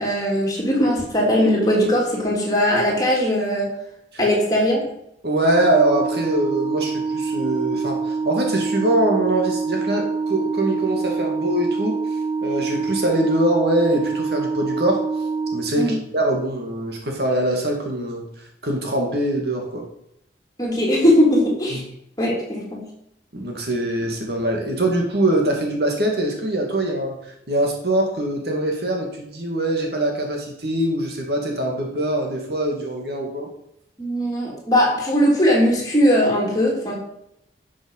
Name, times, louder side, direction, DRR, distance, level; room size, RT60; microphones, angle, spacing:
voice 1, 0.0-3.7 4.2-4.8 15.7-16.0 20.6-21.8 22.2-22.9 34.0-37.0, equal, 20° left, -2 dB, 3.2 m, -19 dB
voice 2, 5.2-12.0 12.4-15.0 15.5-18.3 18.6-19.8 21.7-21.8 23.3-27.2 27.5-33.5, right 1 dB, 60° right, 1 dB, 2.4 m, -23 dB
Organ, 5.4-16.2, right 4 dB, 25° right, 0.5 m, -26 dB
11.5 x 6.3 x 5.6 m, 0.77 s
head